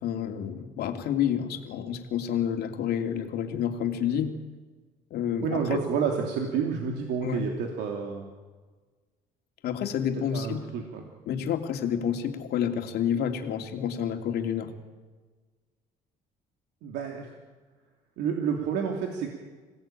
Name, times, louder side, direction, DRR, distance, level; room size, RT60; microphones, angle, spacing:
voice 1, 0.0-4.4 5.1-5.8 7.2-7.5 9.6-10.6 11.3-14.7, left 9 dB, 70° left, 4 dB, 2.8 m, -29 dB
voice 2, 5.4-8.3 10.1-11.0 16.8-17.3 18.2-19.3, right 6 dB, 85° right, 1 dB, 2.9 m, -29 dB
27.0 x 17.5 x 9.0 m, 1.4 s
cardioid pair, 110°, 17 cm